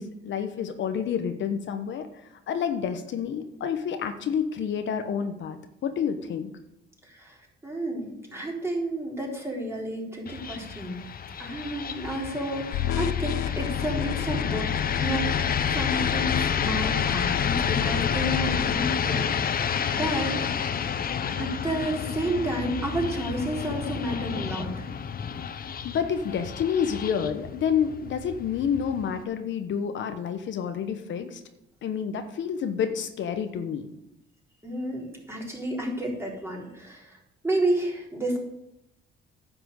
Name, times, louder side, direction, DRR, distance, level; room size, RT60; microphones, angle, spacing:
voice 1, 0.0-6.5 25.8-31.4 31.8-33.9, left 7 dB, 70° left, 8 dB, 1.1 m, -29 dB
voice 2, 7.0-7.4 7.6-11.0 11.4-14.7 15.0-20.4 21.3-24.9 34.6-37.2 37.4-38.4, right 1 dB, 10° right, -2 dB, 3.8 m, -31 dB
sound 1, 10.3-29.2, left 7 dB, 50° left, 0.9 m, -30 dB
sound 2, 12.7-18.7, left 12 dB, 85° left, 0.5 m, -31 dB
10.0 x 6.0 x 7.9 m, 0.84 s
cardioid pair, 90°, 20 cm